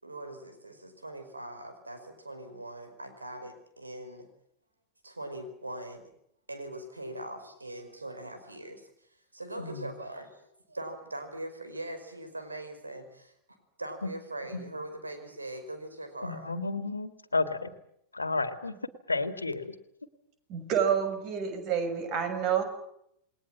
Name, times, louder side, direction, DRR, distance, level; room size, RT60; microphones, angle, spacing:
voice 1, 0.0-4.3 5.0-6.1 6.5-8.9 9.3-13.3 13.8-16.5, right 1 dB, 80° right, 7 dB, 5.1 m, -41 dB
voice 2, 16.2-17.7 18.1-18.7 19.1-19.7, left 3 dB, 80° left, 10 dB, 2.1 m, -31 dB
voice 3, 20.5-22.6, right 8 dB, 40° right, 9 dB, 6.1 m, -28 dB
29.0 x 20.5 x 7.5 m, 0.74 s
figure-of-eight pair, 90°, 0 cm